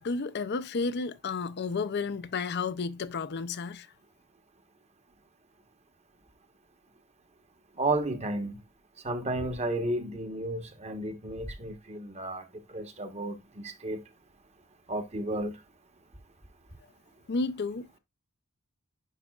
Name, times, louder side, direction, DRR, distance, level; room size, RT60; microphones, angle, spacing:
voice 1, 0.0-3.9 17.3-18.0, left 4 dB, 50° left, 0.5 m, -32 dB
voice 2, 7.8-8.6 9.0-14.0 14.9-15.6, right 2 dB, 30° right, 1.2 m, -33 dB
11.0 x 4.9 x 2.4 m
head